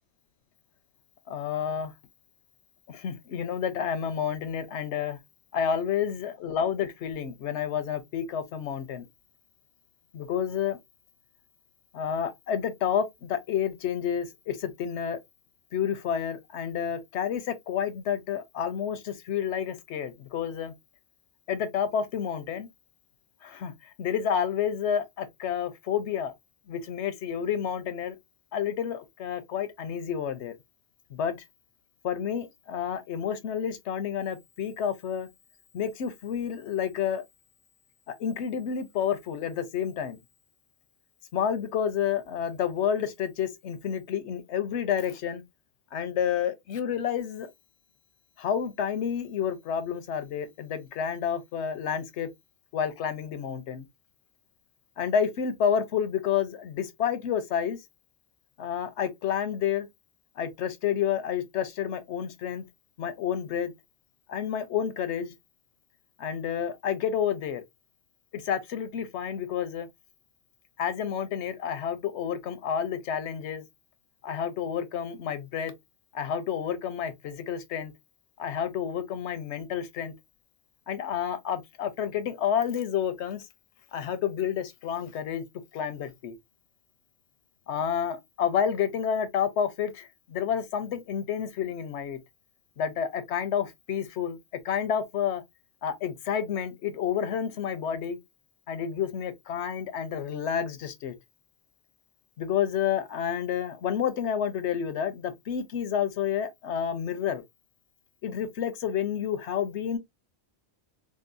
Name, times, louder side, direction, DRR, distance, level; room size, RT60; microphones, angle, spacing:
voice 1, 1.3-1.9 2.9-5.2 5.5-9.1 10.1-10.8 11.9-15.2 15.7-20.7 21.5-22.7 23.4-26.3 26.7-28.2 28.5-30.6 31.1-31.4 32.0-35.3 35.7-37.2 38.1-40.2 41.3-45.4 45.9-47.5 48.4-52.3 52.7-53.9 55.0-57.8 58.6-59.9 60.4-62.6 63.0-63.7 64.3-65.3 66.2-67.6 68.3-69.9 70.8-73.6 74.2-75.7 76.1-77.9 78.4-80.1 80.9-83.4 83.9-85.4 85.7-86.3 87.7-92.2 92.8-94.4 94.6-95.4 95.8-98.2 98.7-101.1 102.4-107.4 108.2-110.0, left 8 dB, 80° left, 0.9 m, -30 dB
3.8 x 2.1 x 2.5 m
omnidirectional pair, 1.1 m